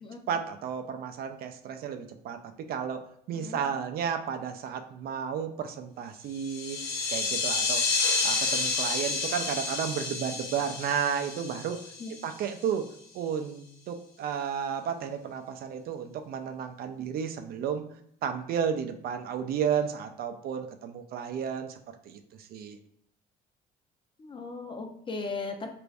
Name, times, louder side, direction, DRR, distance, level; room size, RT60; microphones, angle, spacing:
voice 1, 0.3-3.0 3.3-6.8 7.1-7.8 8.2-11.8 12.2-12.9 13.1-17.8 18.2-21.8 22.1-22.2 22.5-22.8, right 7 dB, 65° right, 7 dB, 0.4 m, -32 dB
voice 2, 3.3-3.6 12.0-12.2 24.2-25.7, left 3 dB, 30° left, 4 dB, 0.6 m, -37 dB
sound 1, 6.3-12.4, left 4 dB, 85° left, 0.8 m, -30 dB
3.0 x 2.5 x 3.4 m, 0.70 s
cardioid pair, 110°, 17 cm